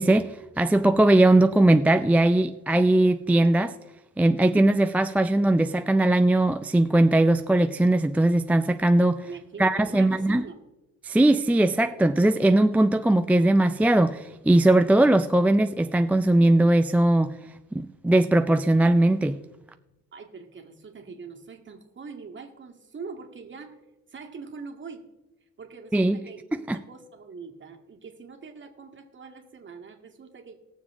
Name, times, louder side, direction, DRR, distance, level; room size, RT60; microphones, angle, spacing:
voice 1, 0.0-3.8 4.2-9.3 9.6-10.4 11.0-17.3 17.7-19.4 25.9-26.2 26.7-26.8, right 1 dB, 5° right, 9 dB, 0.3 m, -20 dB
voice 2, 9.2-10.6 20.1-23.8 24.1-25.0 25.6-26.4 26.7-30.6, right 5 dB, 40° right, 2 dB, 2.0 m, -43 dB
19.5 x 7.2 x 3.7 m, 1.0 s
cardioid pair, 90°, 30 cm